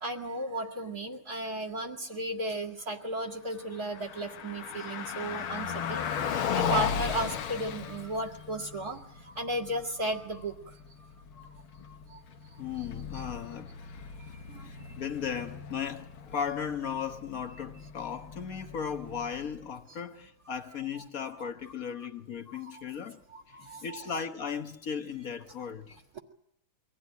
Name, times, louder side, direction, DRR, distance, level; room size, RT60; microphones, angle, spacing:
voice 1, 0.0-9.0 9.3-10.5 12.1-12.2 14.5-15.0 21.4-21.5 22.5-22.8 23.3-24.0, right 1 dB, 45° right, 2.5 m, -35 dB
Car passing by, 3.7-19.8, left 7 dB, 75° left, 1.9 m, -37 dB
voice 2, 12.6-13.7 14.3-14.4 14.6-23.2 23.5-25.9, left 7 dB, 50° left, 1.3 m, -36 dB
24.0 x 16.0 x 9.3 m
omnidirectional pair, 2.3 m